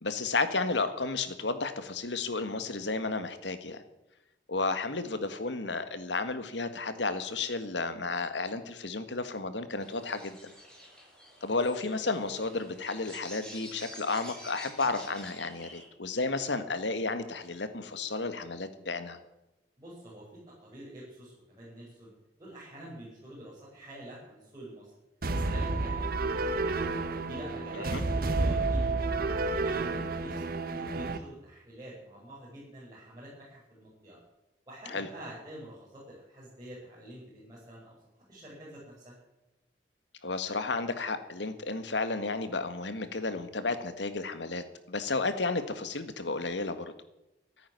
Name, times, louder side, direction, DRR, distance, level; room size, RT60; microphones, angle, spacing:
voice 1, 0.0-3.8 4.5-10.5 11.4-19.2 27.7-28.0 34.9-35.1 40.2-46.9, left 3 dB, 85° left, 10 dB, 1.8 m, -32 dB
sound 1, 9.8-15.8, equal, 5° left, 6.7 m, -49 dB
voice 2, 19.8-22.1 22.4-24.9 25.3-26.7 27.3-29.0 29.4-30.4 30.8-34.2 34.7-38.0 38.3-39.2, right 1 dB, 20° right, -8 dB, 6.1 m, -47 dB
sound 2, 25.2-31.2, right 3 dB, 55° right, 1.3 m, -30 dB
14.5 x 10.5 x 9.6 m, 0.95 s
head